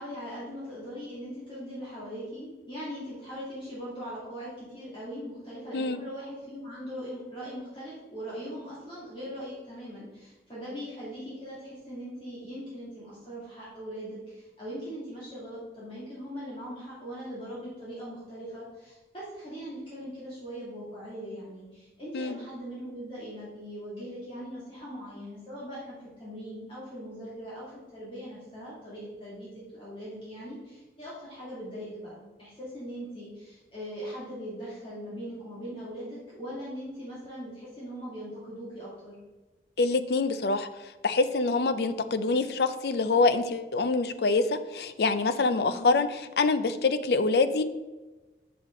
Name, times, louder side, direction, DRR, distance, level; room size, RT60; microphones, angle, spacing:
voice 1, 0.0-39.2 45.6-46.0, equal, 30° left, -9 dB, 2.5 m, -40 dB
voice 2, 39.8-40.7 41.0-46.1 46.4-47.6, left 3 dB, 65° left, 11 dB, 0.5 m, -25 dB
6.9 x 6.5 x 3.7 m, 1.2 s
head